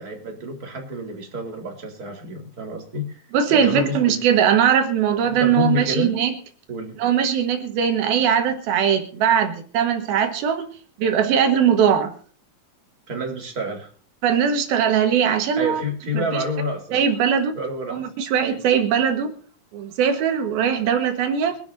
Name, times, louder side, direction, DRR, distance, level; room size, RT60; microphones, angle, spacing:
voice 1, 0.0-3.2 3.5-4.1 5.3-6.1 6.7-6.9 13.1-13.9 15.6-17.0 17.5-18.0 18.4-18.6, left 1 dB, 25° right, 2 dB, 3.9 m, -28 dB
voice 2, 3.3-6.3 7.0-10.7 11.0-12.1 14.2-15.8 16.1-16.4 16.9-17.5 17.9-19.3 19.7-21.6, right 8 dB, 80° right, 6 dB, 3.3 m, -20 dB
24.0 x 12.0 x 2.7 m, 0.44 s
omnidirectional pair, 4.2 m